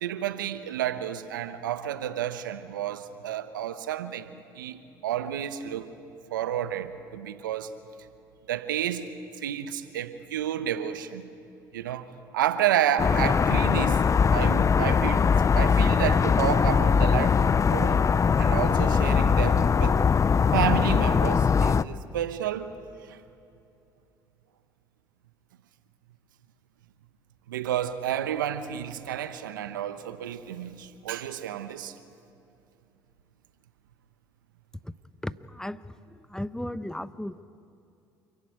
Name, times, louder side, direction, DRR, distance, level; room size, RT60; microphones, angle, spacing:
voice 1, 0.0-5.9 6.3-7.7 8.5-9.1 9.4-11.3 11.7-14.1 14.3-15.3 15.6-18.0 18.4-20.0 20.5-22.7 23.1-23.2 27.5-31.9, right 10 dB, 90° right, 0.9 m, -30 dB
sound 1, 13.0-21.8, left 6 dB, 30° left, 0.5 m, -21 dB
voice 2, 35.2-37.4, left 1 dB, 5° left, 0.8 m, -36 dB
28.0 x 15.0 x 9.3 m
hypercardioid pair, 60°, 10 cm